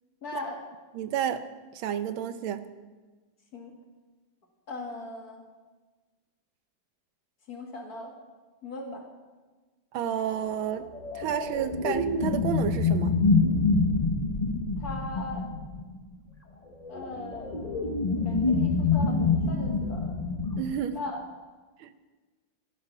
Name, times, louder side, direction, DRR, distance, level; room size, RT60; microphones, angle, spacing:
voice 1, 0.2-0.6 3.5-3.7 4.7-5.5 7.5-8.1 8.6-9.0 14.8-15.5 16.9-17.9 18.2-20.1 20.9-21.2, left 2 dB, 50° left, 1 dB, 2.3 m, -39 dB
voice 2, 0.9-1.4 1.7-2.7 9.9-10.9 11.1-13.1 20.6-21.0 21.8-21.9, right 9 dB, 85° right, 11 dB, 1.6 m, -30 dB
sound 1, 10.8-15.9 16.8-20.6, left 3 dB, 30° left, 0.8 m, -26 dB
14.5 x 10.0 x 6.0 m, 1.3 s
omnidirectional pair, 2.2 m